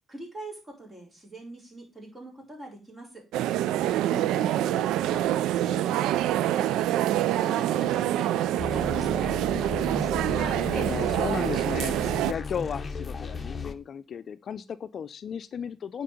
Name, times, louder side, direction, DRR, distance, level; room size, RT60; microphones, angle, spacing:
voice 1, 0.1-3.2 4.0-9.4, right 1 dB, 25° right, 0 dB, 4.6 m, -43 dB
sound 1, 3.3-12.3, right 13 dB, 90° right, 0.3 m, -26 dB
voice 2, 4.1-4.5 10.3-16.0, left 7 dB, 55° left, 13 dB, 0.5 m, -35 dB
sound 2, 8.6-13.7, left 4 dB, 30° left, 0.9 m, -35 dB
9.2 x 4.7 x 5.0 m, 0.29 s
cardioid pair, 90°, 0 cm